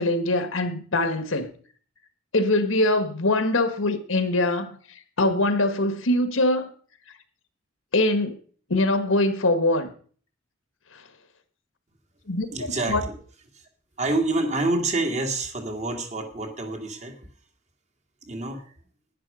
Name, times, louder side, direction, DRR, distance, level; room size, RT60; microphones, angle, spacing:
voice 1, 0.0-1.5 2.3-4.7 5.2-6.7 7.9-8.4 8.7-9.9 12.3-13.0, left 2 dB, 70° left, 1.5 m, -23 dB
voice 2, 12.5-13.2 13.5-13.7 14.0-17.3 18.2-18.7, right 2 dB, 35° right, 2.0 m, -27 dB
11.0 x 10.5 x 5.0 m
head